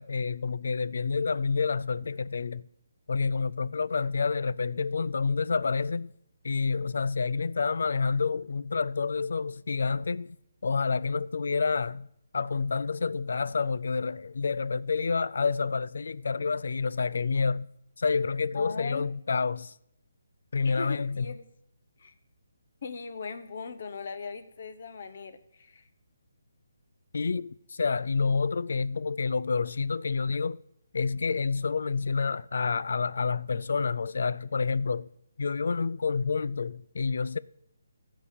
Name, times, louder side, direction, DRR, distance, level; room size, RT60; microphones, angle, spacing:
voice 1, 0.0-2.6 3.1-6.1 6.4-10.4 10.6-12.1 12.3-17.7 18.0-19.7 20.5-21.3 27.1-30.6 30.9-35.1 35.4-37.4, left 4 dB, 55° left, 0.4 m, -28 dB
voice 2, 18.5-19.1 20.6-21.4 22.0-22.1 22.8-25.8, left 4 dB, 40° left, 1.0 m, -39 dB
16.0 x 5.5 x 8.3 m
hypercardioid pair, 175°, 0 cm